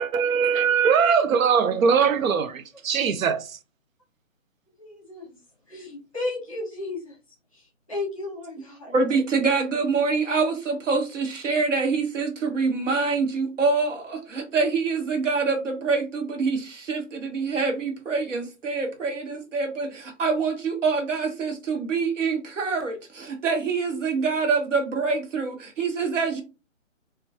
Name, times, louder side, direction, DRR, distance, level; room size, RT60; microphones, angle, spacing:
voice 1, 0.0-3.6, right 6 dB, 85° right, 0.5 m, -21 dB
voice 2, 4.8-5.4 5.7-7.2 7.5-8.9, left 2 dB, 25° left, 0.8 m, -34 dB
voice 3, 8.9-26.4, right 4 dB, 65° right, 0.9 m, -25 dB
2.2 x 2.2 x 2.6 m
hypercardioid pair, 170°, 39 cm